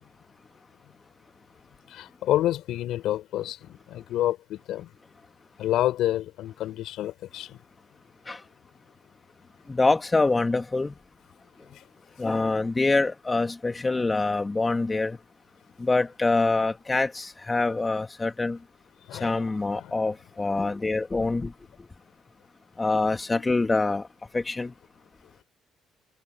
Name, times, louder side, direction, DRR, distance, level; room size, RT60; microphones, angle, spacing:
voice 1, 1.9-4.9 5.6-7.6 11.7-11.8 19.1-19.4 19.7-20.0 23.3-23.4, left 13 dB, 75° left, 5.0 m, -28 dB
voice 2, 9.7-10.9 12.2-15.2 15.8-18.6 19.1-21.5 22.8-24.1 24.3-24.7, left 3 dB, 25° left, 2.4 m, -25 dB
supercardioid pair, 70°, 0 cm